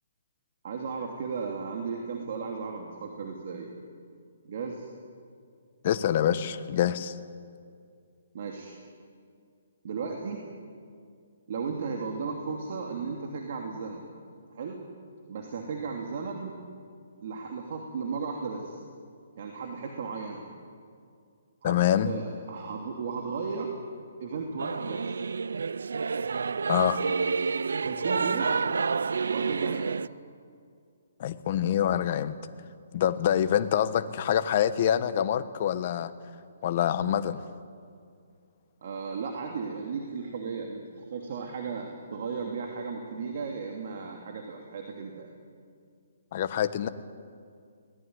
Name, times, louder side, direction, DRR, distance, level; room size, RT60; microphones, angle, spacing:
voice 1, 0.6-3.7 4.4-4.9 8.3-8.7 9.8-10.4 11.5-14.1 14.5-14.8 15.3-16.6 17.2-18.8 19.4-20.4 21.6-23.7 24.2-25.1 27.8-28.5 29.3-29.9 38.8-45.3, right 5 dB, 50° right, 2 dB, 2.9 m, -35 dB
voice 2, 5.8-7.2 21.6-22.1 26.7-27.0 31.2-32.3 32.9-36.1 36.6-37.4 46.3-46.9, left 10 dB, 40° left, 11 dB, 1.2 m, -26 dB
Singing / Musical instrument, 24.6-30.1, right 5 dB, 85° right, 0.5 m, -29 dB
23.5 x 19.0 x 9.7 m, 2.3 s
hypercardioid pair, 165°, 0 cm